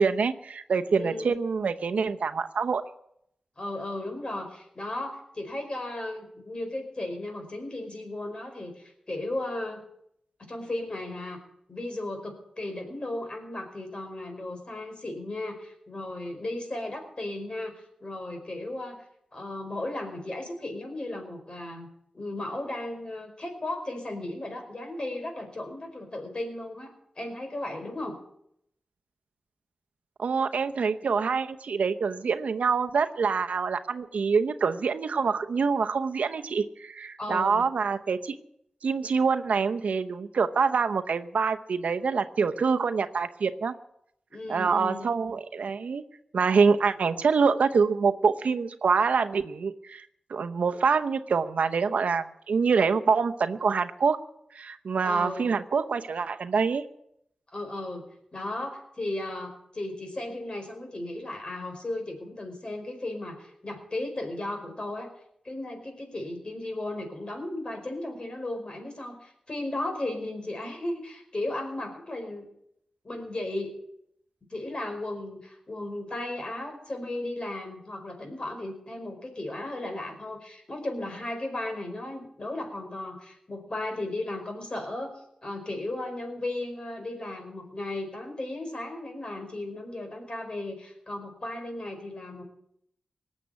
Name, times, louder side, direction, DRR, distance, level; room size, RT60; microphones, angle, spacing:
voice 1, 0.0-2.8 30.2-38.4 38.8-43.7 44.5-46.0 46.3-50.0 50.3-54.2 54.5-56.8, right 5 dB, 80° right, 9 dB, 0.8 m, -25 dB
voice 2, 0.9-1.3 3.6-9.8 10.5-11.4 11.7-19.0 19.3-21.9 22.1-28.2 37.2-37.6 44.3-45.1 46.7-46.9 55.0-55.4 57.5-65.1 65.4-72.5 73.0-73.8 74.5-85.1 85.4-92.4, left 1 dB, 45° left, 3 dB, 5.1 m, -35 dB
19.0 x 7.5 x 9.4 m, 0.75 s
cardioid pair, 45°, 2 cm